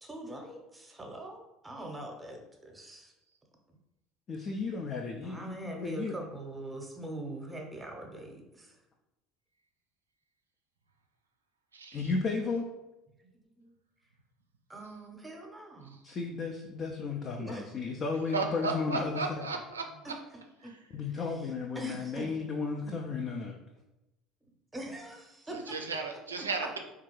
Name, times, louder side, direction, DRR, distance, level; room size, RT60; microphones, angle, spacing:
voice 1, 0.0-3.1 5.2-8.8 13.6-13.7 14.7-16.0 17.4-17.7 20.0-20.1 20.6-20.7 21.1-21.5 21.7-22.3 22.8-22.9 24.7-25.8, right 1 dB, 15° right, 2 dB, 0.7 m, -43 dB
voice 2, 4.3-6.1 11.9-12.7 16.0-19.4 20.9-23.6, left 4 dB, 40° left, 1 dB, 0.4 m, -34 dB
voice 3, 11.7-12.1 15.9-16.0 18.3-20.1 20.6-20.7 25.5-26.8, right 4 dB, 85° right, 4 dB, 0.4 m, -35 dB
3.6 x 2.4 x 3.0 m, 0.96 s
figure-of-eight pair, 65°, 0 cm